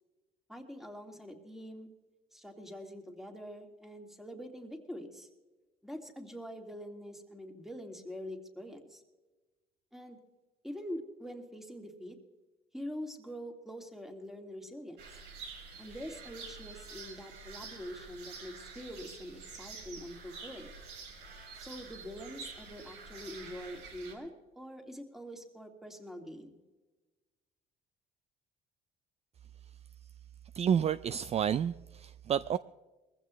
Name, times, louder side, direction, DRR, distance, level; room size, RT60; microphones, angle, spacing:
voice 1, 0.5-1.9 2.3-5.3 5.8-9.0 9.9-10.2 10.6-12.2 12.7-15.0 15.8-20.7 21.6-26.6, equal, ahead, 4 dB, 2.4 m, -44 dB
sound 1, 15.0-24.1, right 4 dB, 85° right, 4.0 m, -48 dB
voice 2, 30.5-32.6, right 8 dB, 40° right, 16 dB, 0.4 m, -30 dB
22.0 x 15.5 x 3.2 m, 1.2 s
cardioid pair, 110°, 17 cm